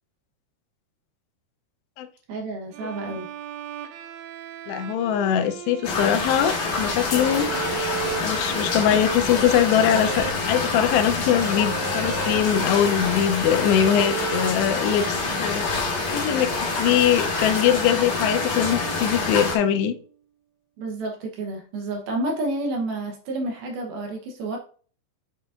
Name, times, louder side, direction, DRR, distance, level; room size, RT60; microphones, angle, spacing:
voice 1, 2.3-3.3 20.8-24.6, right 2 dB, 70° right, 1 dB, 2.5 m, -30 dB
Bowed string instrument, 2.7-19.9, right 10 dB, 90° right, 2.2 m, -36 dB
voice 2, 4.7-7.5 8.2-15.6 16.1-16.5 16.8-19.9, left 9 dB, 80° left, 6 dB, 2.8 m, -22 dB
sound 1, 5.8-19.6, left 4 dB, 55° left, 2.7 m, -26 dB
8.0 x 6.7 x 2.5 m, 0.42 s
omnidirectional pair, 5.1 m